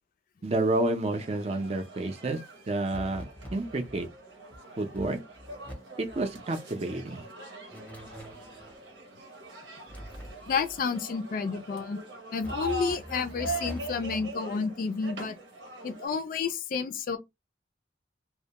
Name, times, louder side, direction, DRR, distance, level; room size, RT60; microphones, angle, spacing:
voice 1, 0.4-2.4 2.7-4.1 4.8-5.2 6.0-7.3, right 2 dB, 35° right, 0.5 m, -30 dB
sound 1, 1.1-16.1, right 2 dB, 85° right, 0.9 m, -42 dB
sound 2, 2.9-4.1 4.5-4.6 4.9-5.7 6.0-6.3 7.7-8.8 9.9-10.9 12.4-14.4, equal, 10° left, 0.6 m, -44 dB
voice 2, 10.5-12.0 12.3-15.4 15.8-17.2, left 5 dB, 50° left, 0.3 m, -30 dB
2.1 x 2.0 x 2.8 m
head